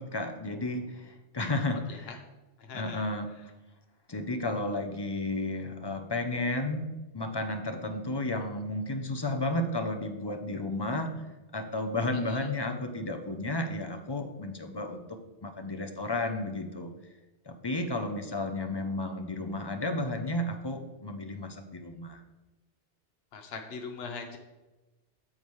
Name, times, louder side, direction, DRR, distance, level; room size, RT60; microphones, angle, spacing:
voice 1, 0.0-2.2 2.7-3.4 4.1-11.2 11.5-16.9 17.5-22.2, left 2 dB, 30° left, 6 dB, 0.5 m, -33 dB
voice 2, 2.6-3.0 12.3-12.4 23.3-24.4, left 4 dB, 65° left, 4 dB, 1.0 m, -41 dB
8.7 x 7.0 x 3.1 m, 1.1 s
omnidirectional pair, 1.1 m